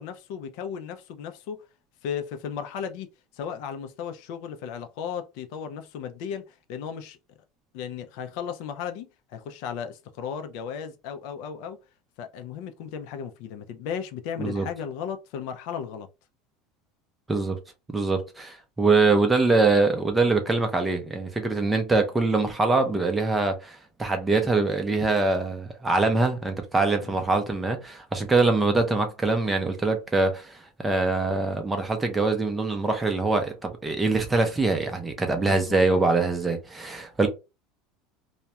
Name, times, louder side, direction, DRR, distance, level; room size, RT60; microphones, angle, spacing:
voice 1, 0.0-1.6 2.0-3.1 3.3-7.2 7.7-11.8 12.2-16.1 27.0-27.4 35.4-36.0, left 7 dB, 65° left, 0.4 m, -35 dB
voice 2, 17.9-37.3, right 3 dB, 10° right, 0.5 m, -23 dB
2.3 x 2.1 x 2.8 m
supercardioid pair, 155°, 0 cm